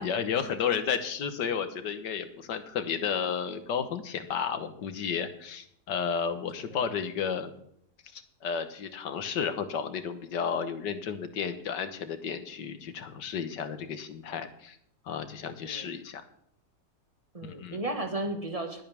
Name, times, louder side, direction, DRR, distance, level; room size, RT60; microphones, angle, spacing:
voice 1, 0.0-7.6 8.1-14.8 15.1-16.2 17.4-17.8, left 7 dB, 90° left, 10 dB, 1.8 m, -32 dB
voice 2, 17.3-18.8, right 2 dB, 20° right, 4 dB, 1.7 m, -34 dB
21.0 x 8.6 x 3.5 m, 0.68 s
omnidirectional pair, 1.8 m